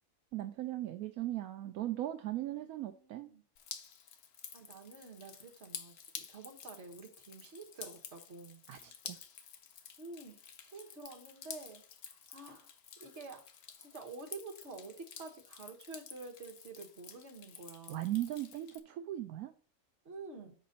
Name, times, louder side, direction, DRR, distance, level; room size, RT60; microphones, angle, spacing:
voice 1, 0.3-3.3 8.7-9.2 17.9-19.5, right 14 dB, 75° right, 8 dB, 1.1 m, -38 dB
voice 2, 2.3-3.4 4.5-8.6 10.0-10.5 10.7-11.8 12.1-12.7 13.0-13.4 13.8-18.1 20.1-20.5, right 3 dB, 50° right, 3 dB, 1.8 m, -49 dB
Drip, 3.6-18.8, left 7 dB, 80° left, 1.4 m, -51 dB
7.6 x 5.2 x 4.0 m, 0.43 s
omnidirectional pair, 1.6 m